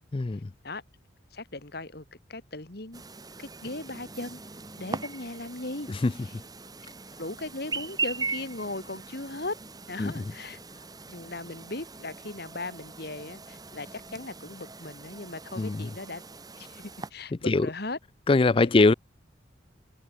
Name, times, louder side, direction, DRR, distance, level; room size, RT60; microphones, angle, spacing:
voice 1, 0.1-0.5 5.9-6.1 10.0-10.2 15.6-15.9 17.3-17.7 18.3-18.9, left 3 dB, 30° left, 0.4 m, -22 dB
voice 2, 1.3-2.0 2.3-3.0 3.4-4.4 4.8-5.9 7.2-9.6 9.9-10.6 11.1-16.2 16.6-18.0 18.5-18.9, left 2 dB, 55° left, 2.4 m, -38 dB
Chirp tweet, 2.9-17.1, right 4 dB, 20° right, 2.6 m, -40 dB
head